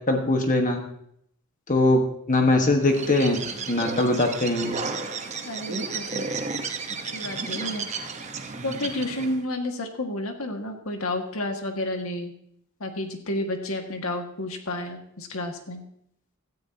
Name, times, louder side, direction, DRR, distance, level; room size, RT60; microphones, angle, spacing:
voice 1, 0.1-0.8 1.7-2.0 2.3-3.4 3.7-4.7, left 2 dB, 35° left, 3 dB, 1.4 m, -21 dB
Bird, 2.8-9.4, right 4 dB, 30° right, 1.0 m, -33 dB
voice 2, 5.5-6.3 7.0-7.9 8.6-12.3 12.8-15.8, left 1 dB, 70° left, 4 dB, 1.8 m, -31 dB
16.5 x 13.5 x 2.8 m, 0.72 s
head